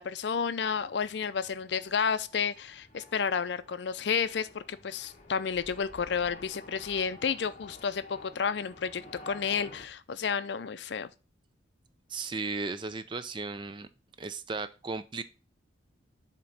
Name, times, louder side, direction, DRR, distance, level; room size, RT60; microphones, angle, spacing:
voice 1, 0.0-11.1, left 6 dB, 65° left, 0.5 m, -31 dB
sound 1, 0.7-9.9, left 2 dB, 40° left, 1.0 m, -51 dB
voice 2, 12.1-13.9 14.2-15.2, right 4 dB, 25° right, 0.4 m, -35 dB
7.6 x 3.0 x 5.5 m
head